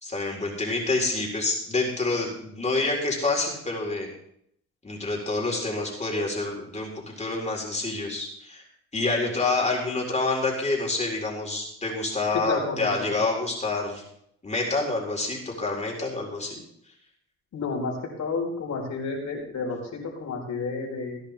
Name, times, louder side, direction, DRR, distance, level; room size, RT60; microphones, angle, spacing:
voice 1, 0.0-4.1 4.8-6.9 7.2-8.6 8.9-14.0 14.4-16.6, left 3 dB, 20° left, -1 dB, 4.1 m, -27 dB
voice 2, 12.5-12.9 17.5-17.9 18.2-21.2, left 4 dB, 65° left, 0 dB, 4.4 m, -30 dB
18.0 x 10.5 x 3.5 m, 0.71 s
cardioid pair, 90°, 30 cm